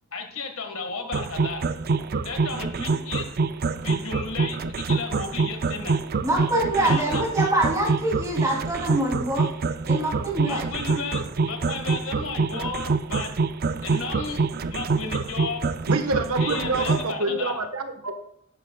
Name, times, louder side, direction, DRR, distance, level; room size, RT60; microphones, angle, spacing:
voice 1, 0.1-1.7 2.2-3.2 3.8-5.9 6.8-7.2 10.4-13.3 13.8-14.4 14.7-15.6 16.4-17.6, left 4 dB, 65° left, 5 dB, 1.8 m, -33 dB
sound 1, 1.1-17.1, right 4 dB, 45° right, 0.5 m, -25 dB
voice 2, 6.2-9.5 9.9-10.6, right 1 dB, 15° right, -3 dB, 3.2 m, -25 dB
voice 3, 15.9-18.2, right 2 dB, 75° right, 6 dB, 1.3 m, -27 dB
13.0 x 10.5 x 2.4 m, 0.71 s
head